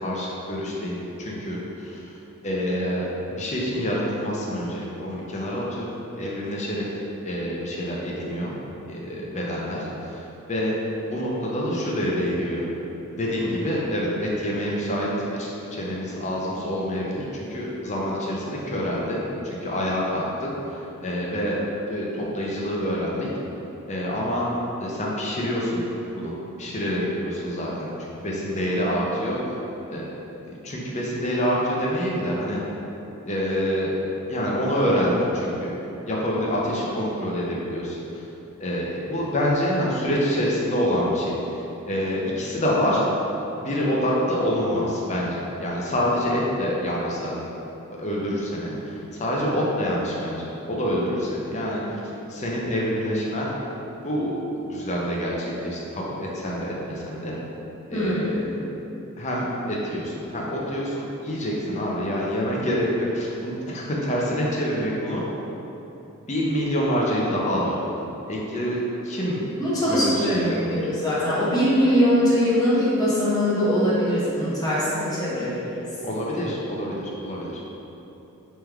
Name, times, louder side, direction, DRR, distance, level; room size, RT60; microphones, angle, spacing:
voice 1, 0.0-2.2 2.4-6.9 7.2-8.5 8.9-10.7 11.0-12.6 13.1-21.6 21.9-23.3 23.9-24.5 24.8-25.8 26.1-26.3 26.6-27.9 28.2-29.4 29.9-30.1 30.4-32.6 33.3-33.9 34.3-35.7 36.1-38.3 38.6-43.0 43.6-47.4 48.0-52.0 52.3-53.5 54.0-54.3 54.6-57.4 57.9-58.5 59.2-65.2 66.3-67.7 68.3-69.5 69.9-70.5 70.7-70.8 76.0-77.6, equal, 30° left, -4 dB, 0.6 m, -26 dB
voice 2, 57.9-58.6 69.2-69.3 69.6-75.9, equal, 15° left, -10 dB, 1.0 m, -22 dB
3.3 x 3.2 x 3.4 m, 3.0 s
head